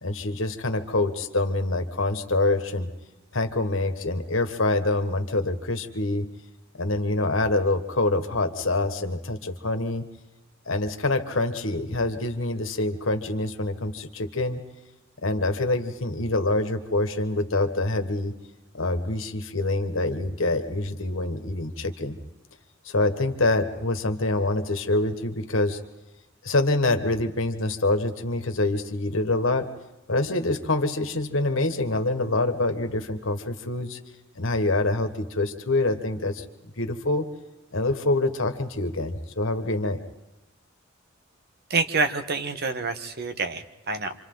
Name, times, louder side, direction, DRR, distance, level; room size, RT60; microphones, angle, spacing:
voice 1, 0.0-2.9 3.3-6.3 6.8-10.0 10.7-14.6 15.2-18.3 18.7-22.2 22.8-25.8 26.4-29.6 30.1-34.0 34.3-36.4 36.8-37.3 37.7-40.0, left 2 dB, 70° left, 6 dB, 1.7 m, -25 dB
voice 2, 41.7-44.1, right 4 dB, 55° right, 9 dB, 1.3 m, -27 dB
28.0 x 26.5 x 4.0 m, 0.98 s
head